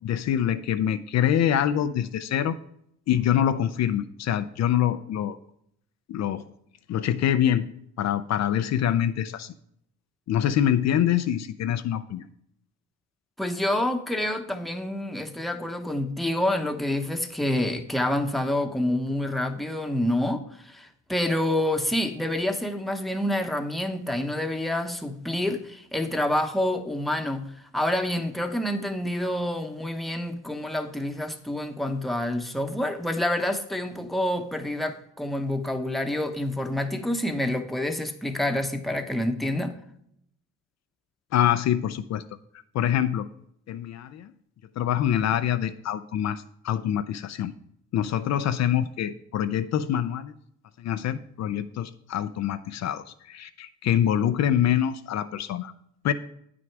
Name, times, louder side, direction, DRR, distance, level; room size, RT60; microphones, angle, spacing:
voice 1, 0.0-2.6 3.1-5.4 6.1-6.4 6.9-7.7 8.0-9.5 10.3-12.3 41.3-42.2 42.7-43.3 43.7-44.3 44.8-47.5 47.9-50.3 50.8-55.7 56.0-56.1, left 10 dB, 60° left, 11 dB, 0.5 m, -25 dB
voice 2, 13.4-39.7, left 1 dB, ahead, 5 dB, 0.9 m, -28 dB
9.2 x 6.1 x 4.6 m, 0.71 s
cardioid pair, 90°, 30 cm